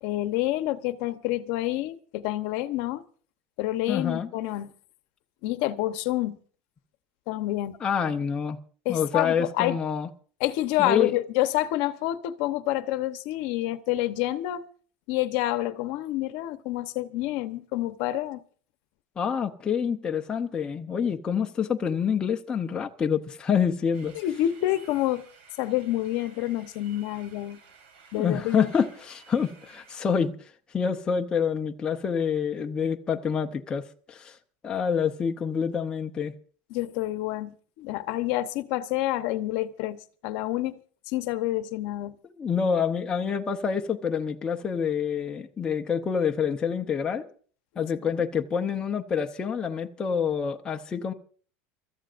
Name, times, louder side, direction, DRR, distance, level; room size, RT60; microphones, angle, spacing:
voice 1, 0.0-3.0 3.6-4.7 5.4-6.4 7.3-7.8 8.8-9.8 10.4-14.6 15.1-18.4 24.1-25.3 25.6-27.6 28.1-28.7 36.7-40.8 41.1-42.2 48.0-48.1, left 15 dB, 55° left, 0.9 m, -28 dB
voice 2, 3.9-4.3 7.8-8.6 8.9-10.1 10.8-11.1 19.2-24.1 28.1-34.4 34.6-36.3 42.4-47.3 47.8-51.1, left 7 dB, 15° left, 0.7 m, -27 dB
sound 1, 23.9-29.9, right 5 dB, 90° right, 4.3 m, -54 dB
29.5 x 14.0 x 2.5 m
cardioid pair, 175°, 6 cm